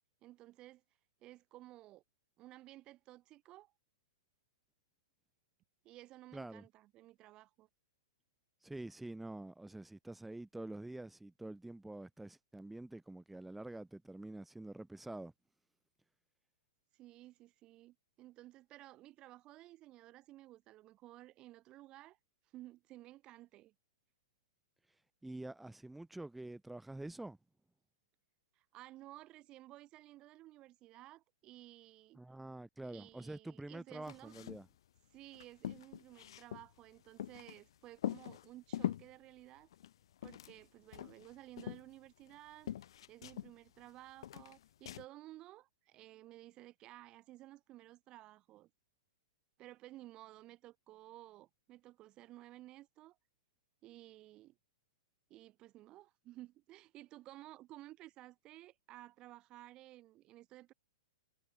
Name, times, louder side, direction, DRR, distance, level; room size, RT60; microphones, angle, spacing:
voice 1, 0.2-0.8 1.2-2.0 2.4-3.7 5.8-7.7 16.9-22.2 22.5-23.7 28.5-32.2 32.8-34.3 35.1-39.7 40.2-42.7 43.1-48.7 49.6-53.2 53.8-54.6 55.3-60.7, right 16 dB, 30° right, 3.0 m, -55 dB
voice 2, 6.3-6.6 8.6-15.3 25.2-27.4 32.1-34.7, right 2 dB, 5° right, 2.2 m, -47 dB
sound 1, 34.0-34.7 35.0-35.1 35.3-37.6 38.0-39.1 39.7-40.7 40.9-42.4 42.7-43.9 44.2-45.1, left 11 dB, 70° left, 1.1 m, -42 dB
hypercardioid pair, 140°, 3 cm